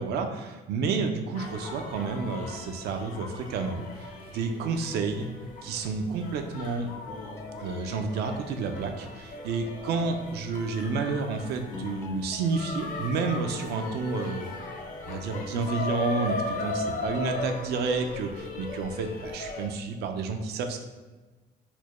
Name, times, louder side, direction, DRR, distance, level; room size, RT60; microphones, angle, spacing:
voice 1, 0.0-5.3 5.6-6.9 7.6-14.5 15.0-20.8, right 4 dB, 75° right, 5 dB, 0.4 m, -30 dB
sound 1, 1.3-19.7, left 3 dB, 50° left, 0.6 m, -38 dB
sound 2, 7.1-9.0 9.4-13.9 14.1-16.1 16.5-17.8, left 4 dB, 15° left, 0.3 m, -45 dB
4.2 x 2.1 x 3.0 m, 1.3 s
cardioid pair, 110°, 17 cm